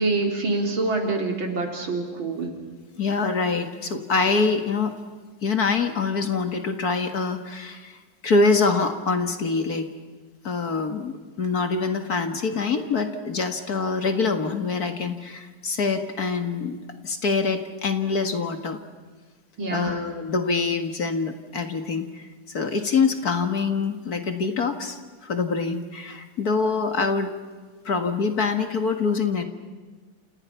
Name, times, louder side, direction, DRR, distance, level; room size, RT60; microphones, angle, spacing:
voice 1, 0.0-2.5 19.6-20.0, right 3 dB, 75° right, 2 dB, 4.5 m, -26 dB
voice 2, 3.0-5.0 5.4-8.0 8.2-9.9 10.4-16.8 17.0-18.8 19.7-27.3 27.8-29.4, left 4 dB, 50° left, 6 dB, 2.2 m, -25 dB
29.5 x 28.5 x 5.8 m, 1.4 s
omnidirectional pair, 2.2 m